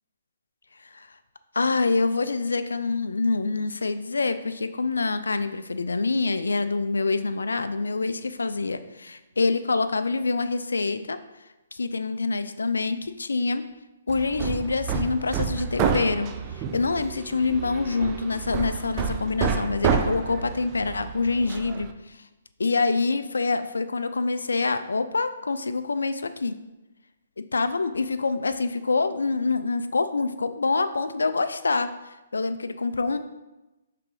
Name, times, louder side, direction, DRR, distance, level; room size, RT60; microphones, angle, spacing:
voice 1, 1.5-11.2 11.7-13.6 14.1-16.3 16.5-22.2 22.6-26.6 27.4-31.9 32.3-33.2, left 3 dB, 80° left, 11 dB, 0.5 m, -26 dB
Hammer, 14.1-21.9, right 6 dB, 30° right, 0.5 m, -29 dB
5.8 x 3.7 x 4.9 m, 1.0 s
figure-of-eight pair, 135°, 0 cm